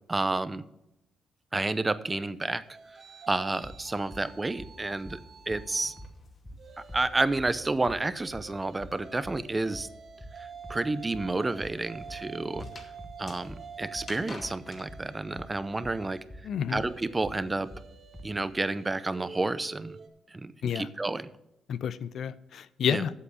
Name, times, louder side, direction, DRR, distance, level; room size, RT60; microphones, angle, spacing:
voice 1, 0.1-0.6 1.5-2.6 3.3-5.2 5.5-5.9 6.8-9.9 10.4-12.7 13.2-16.2 16.7-17.7 18.2-20.0 20.3-21.3 22.9-23.0, right 2 dB, 20° right, 14 dB, 0.6 m, -30 dB
sound 1, 2.1-6.1 6.5-20.1, right 6 dB, 50° right, 1.5 m, -48 dB
sound 2, 3.6-18.4, equal, 15° left, 1.1 m, -46 dB
sound 3, 5.0-8.7 9.0-14.9, left 2 dB, 40° left, 2.3 m, -50 dB
voice 2, 16.4-16.8 20.6-20.9 21.7-23.1, left 8 dB, 65° left, 15 dB, 0.5 m, -30 dB
8.3 x 7.7 x 6.9 m, 0.86 s
cardioid pair, 90°, 0 cm